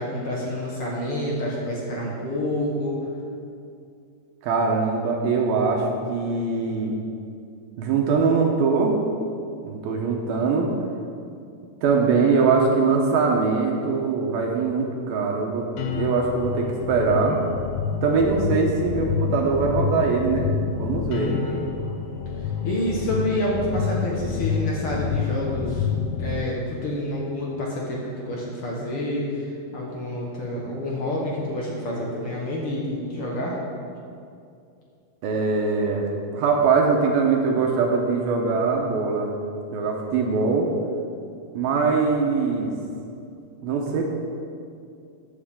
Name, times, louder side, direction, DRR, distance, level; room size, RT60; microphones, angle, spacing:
voice 1, 0.0-3.0 21.2-21.6 22.6-25.9 26.2-29.5 29.7-33.6, left 1 dB, 60° left, -3 dB, 1.5 m, -28 dB
voice 2, 4.4-6.9 7.8-9.0 9.6-10.7 11.8-17.4 18.0-20.5 20.8-21.4 35.2-39.3 39.7-40.7 41.5-42.7 43.6-44.0, right 4 dB, 75° right, 0 dB, 2.6 m, -22 dB
sound 1, 15.8-26.4, left 6 dB, 80° left, 2.5 m, -28 dB
14.0 x 9.5 x 3.7 m, 2.4 s
omnidirectional pair, 4.7 m